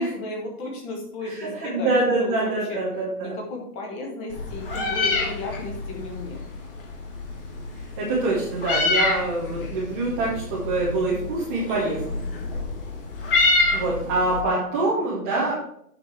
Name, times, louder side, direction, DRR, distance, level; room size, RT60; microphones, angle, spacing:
voice 1, 0.0-2.8 3.2-6.4 14.4-15.1, left 2 dB, 15° left, 0 dB, 1.2 m, -34 dB
voice 2, 1.2-3.4 8.0-12.2 13.7-15.5, right 2 dB, 10° right, -7 dB, 0.7 m, -25 dB
Meow, 4.3-14.4, left 3 dB, 35° left, 1.8 m, -27 dB
8.2 x 5.9 x 4.6 m, 0.71 s
figure-of-eight pair, 130°, 46 cm